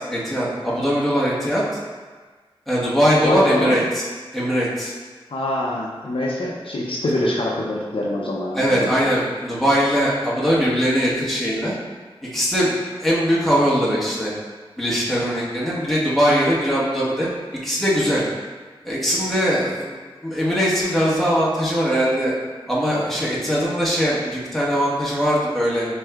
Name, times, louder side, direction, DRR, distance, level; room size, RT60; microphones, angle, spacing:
voice 1, 0.0-1.6 2.7-4.1 4.3-4.9 8.6-11.7 12.2-14.3 14.8-17.3 17.6-18.3 18.8-19.9 20.2-22.4 22.7-25.9, equal, ahead, -7 dB, 1.2 m, -21 dB
voice 2, 3.2-3.8 5.3-8.9, left 1 dB, 65° left, -4 dB, 0.5 m, -24 dB
4.4 x 3.1 x 2.3 m, 1.4 s
cardioid pair, 40°, 10 cm